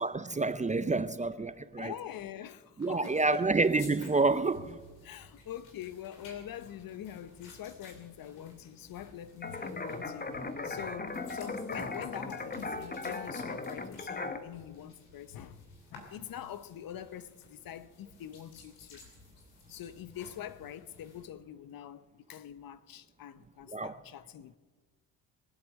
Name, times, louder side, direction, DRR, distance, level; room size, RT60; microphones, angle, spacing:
voice 1, 0.0-1.9 2.8-4.8 23.7-23.9, right 3 dB, 15° right, 0.6 m, -28 dB
voice 2, 1.8-3.5 5.0-10.4 10.6-15.6 15.9-19.0 19.7-24.6, left 11 dB, 55° left, 0.9 m, -44 dB
sound 1, 2.8-21.3, left 3 dB, 90° left, 3.0 m, -55 dB
sound 2, 9.4-14.4, left 3 dB, 20° left, 1.3 m, -38 dB
21.5 x 8.0 x 6.3 m
hypercardioid pair, 55°, 42 cm